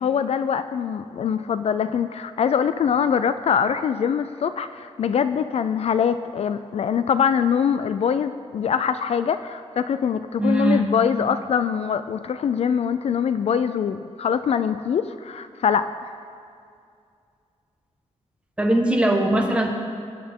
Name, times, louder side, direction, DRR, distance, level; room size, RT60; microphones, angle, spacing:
voice 1, 0.0-16.1, left 7 dB, 60° left, 11 dB, 0.3 m, -23 dB
voice 2, 10.4-11.0 18.6-19.7, right 1 dB, 10° right, 1 dB, 1.2 m, -20 dB
20.0 x 9.4 x 3.7 m, 2.3 s
wide cardioid pair, 165°, 12 cm